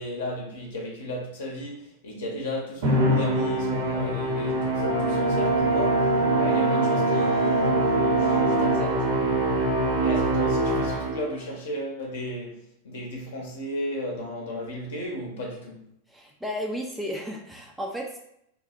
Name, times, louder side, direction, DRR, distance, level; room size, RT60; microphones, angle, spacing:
voice 1, 0.0-7.8 8.2-9.1 10.0-15.9, left 1 dB, 60° left, -1 dB, 0.8 m, -35 dB
Musical instrument, 2.8-11.4, right 1 dB, 55° right, 0.7 m, -25 dB
Brass instrument, 4.8-8.9, right 3 dB, 85° left, 0.3 m, -24 dB
voice 2, 16.1-18.2, equal, 5° right, -1 dB, 0.3 m, -33 dB
2.6 x 2.0 x 2.5 m, 0.76 s
figure-of-eight pair, 90°, 0 cm